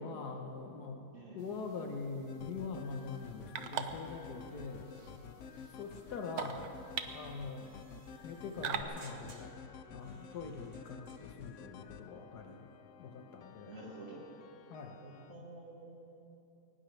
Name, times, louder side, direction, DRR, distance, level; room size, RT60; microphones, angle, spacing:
voice 1, 0.0-1.1 1.3-4.9 5.7-6.7 7.1-7.7 8.2-9.5 9.9-12.7 13.0-13.7 14.7-15.0, left 4 dB, 90° left, 3 dB, 1.7 m, -43 dB
sound 1, 1.4-8.8, right 8 dB, 75° right, 1.3 m, -45 dB
sound 2, 2.3-15.3, left 7 dB, 65° left, 0.8 m, -52 dB
sound 3, 7.7-11.7, right 3 dB, 30° right, 1.1 m, -61 dB
voice 2, 13.7-14.3 15.0-16.4, right 2 dB, 50° right, -6 dB, 2.2 m, -50 dB
22.0 x 19.0 x 3.3 m, 2.8 s
omnidirectional pair, 1.7 m